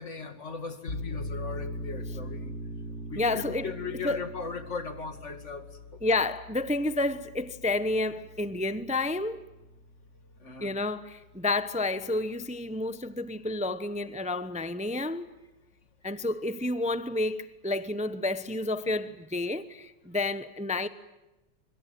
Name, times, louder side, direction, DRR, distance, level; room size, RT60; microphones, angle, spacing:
voice 1, 0.0-2.5 3.1-6.2 10.4-10.7, left 5 dB, 45° left, 2.4 m, -38 dB
sound 1, 0.9-12.2, left 1 dB, 75° left, 4.3 m, -41 dB
voice 2, 3.2-3.7 4.0-4.2 6.0-9.4 10.6-15.3 16.0-20.9, left 2 dB, 5° right, 0.7 m, -30 dB
26.0 x 24.0 x 9.0 m
omnidirectional pair, 1.8 m